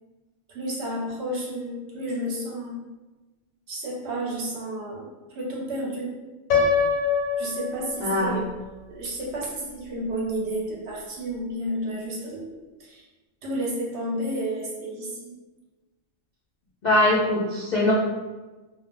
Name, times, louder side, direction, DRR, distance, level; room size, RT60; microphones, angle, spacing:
voice 1, 0.5-2.8 3.7-5.1 5.3-6.1 7.4-8.4 8.9-12.5 12.8-13.0 13.4-15.3, right 1 dB, 65° right, -3 dB, 0.8 m, -31 dB
Piano, 6.5-8.5, left 5 dB, 80° left, 1.0 m, -24 dB
voice 2, 8.0-8.4 16.8-17.9, left 1 dB, 65° left, -7 dB, 0.4 m, -22 dB
2.4 x 2.0 x 3.2 m, 1.2 s
omnidirectional pair, 1.4 m